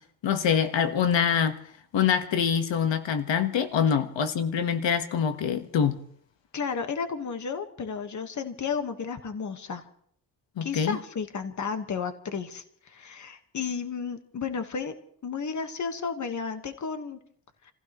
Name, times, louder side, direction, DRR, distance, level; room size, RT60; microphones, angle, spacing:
voice 1, 0.2-1.6 1.9-6.0 10.6-11.0, left 7 dB, 90° left, 1.3 m, -25 dB
voice 2, 6.5-9.8 10.6-14.9 15.2-17.2, left 5 dB, 40° left, 1.4 m, -33 dB
29.0 x 15.5 x 3.0 m
wide cardioid pair, 160°, 43 cm